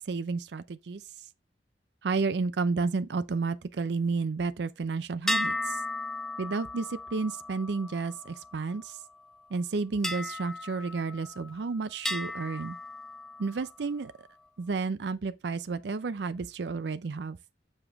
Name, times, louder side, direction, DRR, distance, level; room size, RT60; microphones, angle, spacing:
voice 1, 0.1-1.0 2.0-5.8 6.4-9.0 9.5-12.8 13.4-14.1 14.6-17.4, right 4 dB, 70° right, 0.5 m, -31 dB
sound 1, 5.3-8.9 10.0-11.6 12.0-13.7, left 1 dB, ahead, 0.5 m, -35 dB
7.5 x 5.0 x 3.4 m
head